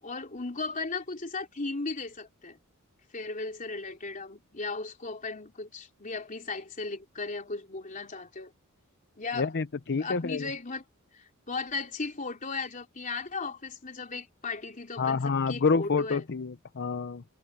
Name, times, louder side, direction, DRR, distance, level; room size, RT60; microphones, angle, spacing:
voice 1, 0.0-2.6 3.1-8.5 9.2-9.5 10.0-10.8 11.1-16.2, left 3 dB, 35° left, 3.4 m, -36 dB
voice 2, 9.3-10.5 15.0-17.2, left 4 dB, 50° left, 0.7 m, -28 dB
head